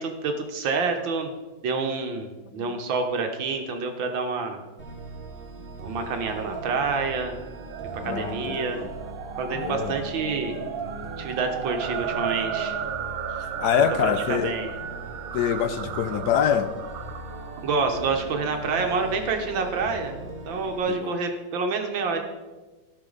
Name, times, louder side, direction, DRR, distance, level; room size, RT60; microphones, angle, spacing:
voice 1, 0.0-1.3 1.6-4.6 5.8-7.4 8.0-8.8 9.4-10.6 11.2-12.8 13.8-14.7 17.6-22.2, right 4 dB, 90° right, 4 dB, 1.9 m, -28 dB
sound 1, 4.8-20.8, right 1 dB, 35° right, 1.4 m, -39 dB
sound 2, 6.1-18.5, right 9 dB, 70° right, 0.8 m, -35 dB
voice 2, 8.0-8.9 9.5-9.9 13.4-14.5 15.3-16.7 20.9-21.1, left 8 dB, 70° left, 10 dB, 1.0 m, -25 dB
16.0 x 5.8 x 3.9 m, 1.2 s
omnidirectional pair, 2.0 m